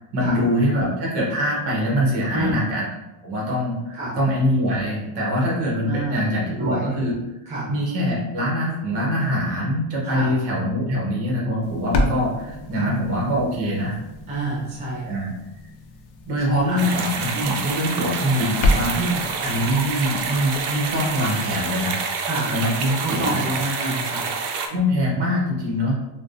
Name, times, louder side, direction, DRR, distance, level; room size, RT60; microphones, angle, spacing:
voice 1, 0.0-2.9 3.2-7.1 7.4-14.0 15.0-15.3 16.3-18.9 19.4-22.0 22.5-23.4 24.7-26.0, equal, 50° right, -4 dB, 1.1 m, -23 dB
voice 2, 2.3-2.7 3.9-4.2 5.9-6.2 6.5-6.9 7.5-7.7 10.0-10.3 12.7-13.0 14.3-15.1 16.5-16.8 19.0-19.3 22.3-22.6 23.0-24.3, right 2 dB, 15° right, -7 dB, 0.4 m, -27 dB
sound 1, 11.6-21.9, left 1 dB, 70° left, 0.6 m, -30 dB
sound 2, 16.8-24.7, right 5 dB, 85° right, 0.6 m, -28 dB
3.4 x 2.2 x 2.5 m, 0.98 s
cardioid pair, 165°, 49 cm